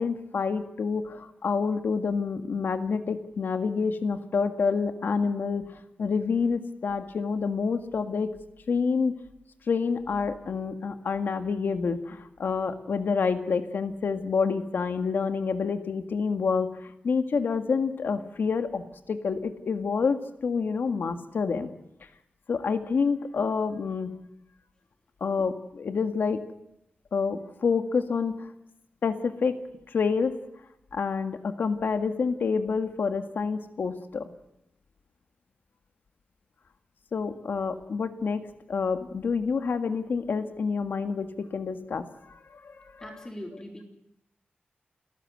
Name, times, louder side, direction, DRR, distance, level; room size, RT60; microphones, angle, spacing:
voice 1, 0.0-5.7 6.0-8.3 8.7-9.1 9.7-21.7 22.5-24.1 25.2-26.4 27.1-28.5 29.0-29.6 29.9-30.4 30.9-34.3 37.1-38.4 38.7-43.1, left 5 dB, 80° left, 8 dB, 1.9 m, -28 dB
voice 2, 43.0-43.8, equal, 20° left, 2 dB, 3.5 m, -40 dB
29.5 x 14.0 x 8.0 m, 0.81 s
wide cardioid pair, 140°, 3 cm